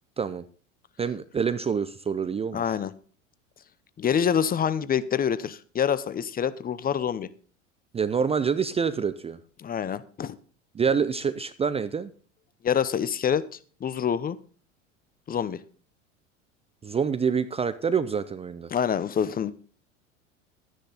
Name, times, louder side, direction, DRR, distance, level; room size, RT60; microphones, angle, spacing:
voice 1, 1.0-2.8 7.9-9.4 10.7-12.1 16.8-18.7, right 6 dB, 15° right, 14 dB, 0.5 m, -26 dB
voice 2, 2.5-2.9 4.0-7.3 9.6-10.4 12.6-13.4 13.8-14.4 15.3-15.6 18.7-19.5, left 8 dB, 25° left, 15 dB, 0.7 m, -26 dB
12.0 x 10.0 x 4.0 m, 0.41 s
hypercardioid pair, 85°, 38 cm